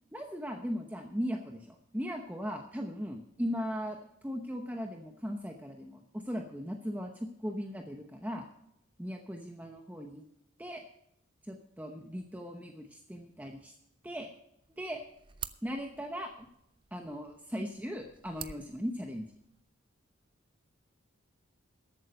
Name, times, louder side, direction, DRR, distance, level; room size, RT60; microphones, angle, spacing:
voice 1, 0.1-4.0 4.2-8.5 9.0-10.2 10.6-10.8 11.4-13.7 14.0-14.3 14.8-15.0 15.6-16.5 16.9-19.2, equal, 10° right, 3 dB, 0.8 m, -38 dB
sound 1, 14.6-19.6, right 8 dB, 25° right, 0.4 m, -49 dB
13.5 x 8.6 x 5.2 m, 0.75 s
head